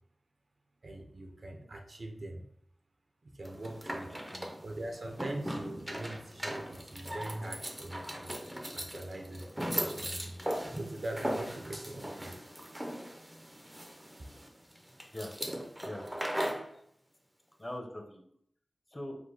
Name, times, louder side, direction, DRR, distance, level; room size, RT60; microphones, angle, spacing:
voice 1, 0.8-2.4 3.2-4.1 4.6-8.3 8.7-10.4 10.7-12.4, right 1 dB, 55° right, 3 dB, 0.6 m, -42 dB
sound 1, 3.4-16.7, equal, 10° right, 0.5 m, -39 dB
voice 2, 4.3-4.6 15.1-16.1 17.6-18.2 18.9-19.2, left 1 dB, 20° left, 2 dB, 0.7 m, -42 dB
5.1 x 2.1 x 3.9 m, 0.68 s
wide cardioid pair, 95°, 0 cm